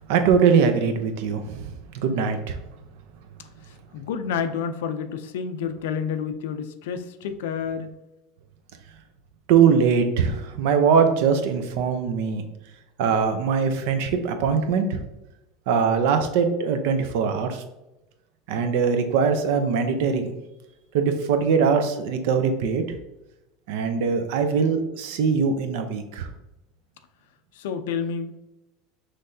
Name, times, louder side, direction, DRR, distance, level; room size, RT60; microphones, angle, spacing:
voice 1, 0.1-2.6 9.5-12.4 13.0-15.0 15.7-17.6 18.5-20.3 20.9-23.0 23.7-26.3, right 6 dB, 60° right, 7 dB, 0.6 m, -22 dB
voice 2, 3.4-7.9 27.5-28.5, left 7 dB, 90° left, 9 dB, 0.5 m, -30 dB
5.7 x 3.2 x 2.7 m, 0.96 s
supercardioid pair, 170°, 0 cm